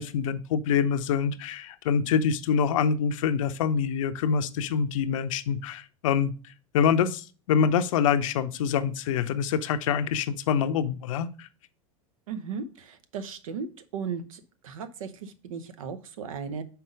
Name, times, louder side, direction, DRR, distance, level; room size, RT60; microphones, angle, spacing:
voice 1, 0.0-6.3 6.7-11.5, left 7 dB, 70° left, 0.6 m, -25 dB
voice 2, 12.3-13.7 13.9-16.6, right 6 dB, 75° right, 0.9 m, -36 dB
5.7 x 4.2 x 5.1 m
hypercardioid pair, 90°, 18 cm